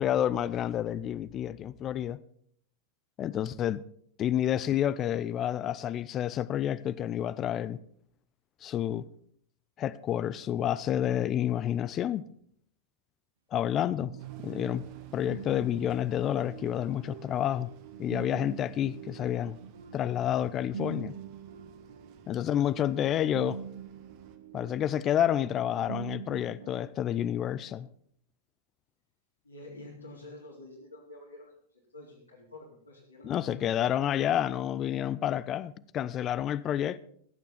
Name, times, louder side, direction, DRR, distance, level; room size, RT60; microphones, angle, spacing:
voice 1, 0.0-2.2 3.2-3.8 4.2-7.8 8.6-9.0 9.8-12.2 13.5-14.1 14.4-14.8 15.1-17.7 18.0-19.6 19.9-21.1 22.3-23.6 24.5-27.9 33.2-37.0, left 10 dB, 30° left, 0.6 m, -29 dB
sound 1, 14.0-26.9, right 8 dB, 65° right, 0.8 m, -44 dB
sound 2, 14.2-24.4, right 7 dB, 45° right, 1.6 m, -57 dB
voice 2, 29.4-31.5 31.9-33.5, left 2 dB, 80° left, 3.8 m, -48 dB
16.5 x 9.3 x 5.6 m
figure-of-eight pair, 90°, 0 cm